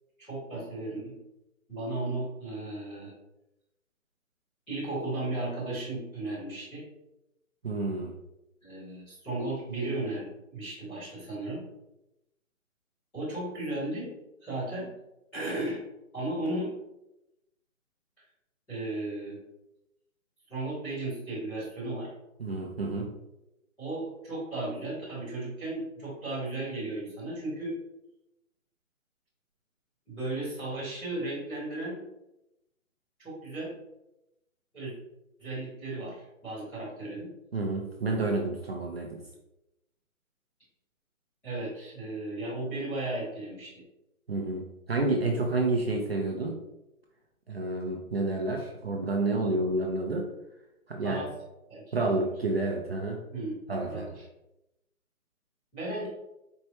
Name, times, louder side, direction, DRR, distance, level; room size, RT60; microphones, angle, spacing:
voice 1, 0.2-1.1 1.7-3.1 4.7-6.8 8.6-11.6 13.1-14.1 14.4-14.9 15.3-15.8 16.1-16.7 18.7-19.4 20.5-22.1 23.8-27.8 30.1-32.0 33.2-33.7 34.7-34.9 35.4-37.3 41.4-43.8 51.0-51.3 51.7-52.2 53.3-53.6 53.9-54.2 55.7-56.1, right 2 dB, 5° left, -17 dB, 0.9 m, -35 dB
voice 2, 7.6-8.1 22.4-23.2 37.5-39.2 44.3-46.6 47.5-50.3 50.9-51.2 51.9-53.2 53.7-54.1, right 2 dB, 45° right, 0 dB, 0.6 m, -29 dB
4.5 x 3.1 x 2.7 m, 0.90 s
hypercardioid pair, 165°, 42 cm